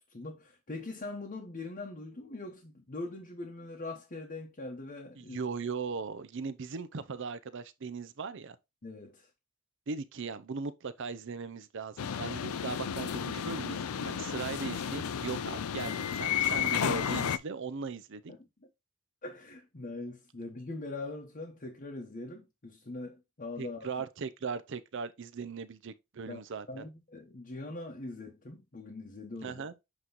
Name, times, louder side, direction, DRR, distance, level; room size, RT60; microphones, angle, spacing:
voice 1, 0.1-5.4 8.8-9.3 18.3-18.7 19.2-23.9 26.3-26.4 26.7-29.6, left 2 dB, 35° left, 0.9 m, -42 dB
voice 2, 5.2-8.6 9.9-18.3 23.6-26.9 29.4-29.7, right 5 dB, 55° right, 0.5 m, -38 dB
sound 1, 12.0-17.4, left 8 dB, 75° left, 0.4 m, -32 dB
7.9 x 3.0 x 3.9 m
head